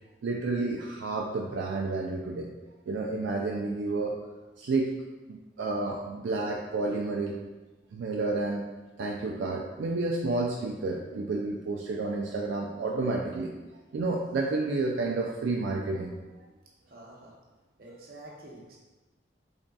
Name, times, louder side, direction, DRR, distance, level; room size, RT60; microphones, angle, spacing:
voice 1, 0.2-2.5 2.9-4.2 4.6-4.9 5.3-7.4 7.9-8.6 9.0-13.5 13.9-16.1, right 3 dB, 80° right, -1 dB, 0.3 m, -30 dB
voice 2, 16.9-17.3 17.8-18.8, right 1 dB, 55° right, -3 dB, 0.7 m, -48 dB
3.9 x 3.5 x 2.2 m, 1.2 s
head